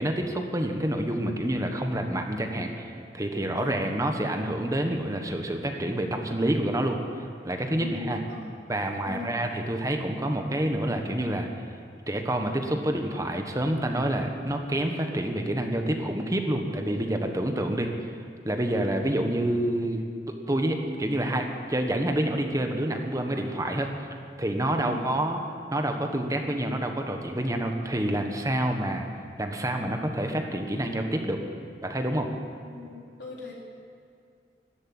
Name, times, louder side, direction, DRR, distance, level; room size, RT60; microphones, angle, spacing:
voice 1, 0.0-7.0 7.4-8.2 8.7-11.5 12.1-17.9 18.4-20.0 20.5-23.9 24.4-25.4 25.7-29.1 29.4-31.4 31.8-32.3, right 1 dB, 20° right, 4 dB, 1.3 m, -28 dB
voice 2, 7.7-8.5 9.0-9.4 24.8-25.0 32.6-33.5, left 3 dB, 90° left, -3 dB, 4.1 m, -39 dB
13.0 x 12.5 x 8.7 m, 2.5 s
head